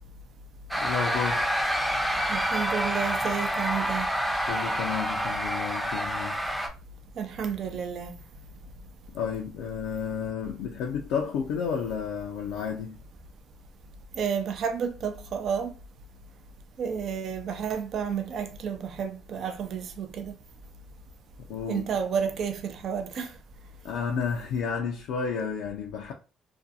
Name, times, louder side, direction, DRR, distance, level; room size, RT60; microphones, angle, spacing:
sound 1, 0.7-6.7, equal, ahead, 0.5 m, -28 dB
voice 1, 0.8-1.5 4.5-6.4 9.1-13.0 21.5-21.9 23.8-26.1, left 6 dB, 85° left, 0.4 m, -31 dB
voice 2, 2.3-4.1 7.2-8.2 14.2-15.7 16.8-20.3 21.7-23.3, right 7 dB, 60° right, 0.4 m, -31 dB
2.5 x 2.2 x 2.6 m
cardioid pair, 90°, 0 cm